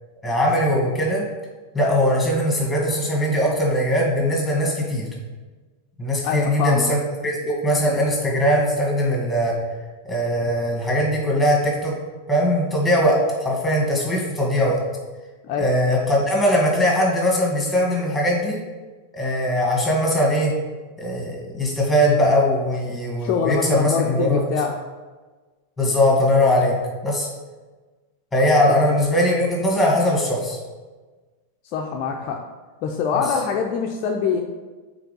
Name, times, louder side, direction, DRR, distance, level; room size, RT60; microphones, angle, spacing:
voice 1, 0.2-1.2 1.7-5.1 6.0-9.5 10.1-11.9 12.3-14.8 15.6-18.6 19.1-20.5 21.0-24.6 25.8-26.8 27.0-27.3 28.3-30.6 33.1-33.2, equal, 5° left, -2 dB, 1.9 m, -20 dB
voice 2, 6.2-6.9 15.4-15.7 23.2-24.7 28.7-28.8 31.7-32.4 32.8-34.4, left 6 dB, 40° left, 1 dB, 0.5 m, -24 dB
5.7 x 4.0 x 5.3 m, 1.3 s
figure-of-eight pair, 90°, 0 cm